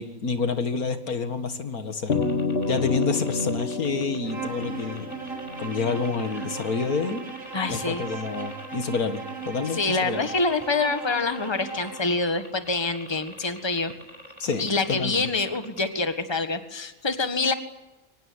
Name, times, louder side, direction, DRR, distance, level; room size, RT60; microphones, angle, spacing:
voice 1, 0.0-2.2 2.7-5.1 5.6-7.3 7.7-10.3 14.4-15.3, left 4 dB, 90° left, 8 dB, 2.3 m, -28 dB
sound 1, 2.1-6.7, left 3 dB, 45° left, 1.6 m, -29 dB
sound 2, 2.1-15.9, equal, 30° right, 5.0 m, -46 dB
Bowed string instrument, 4.2-12.1, right 5 dB, 65° right, 3.2 m, -37 dB
voice 2, 7.5-8.0 9.7-13.9 14.6-17.5, left 3 dB, 20° left, 8 dB, 1.6 m, -26 dB
24.5 x 19.0 x 9.8 m, 1.1 s
omnidirectional pair, 1.5 m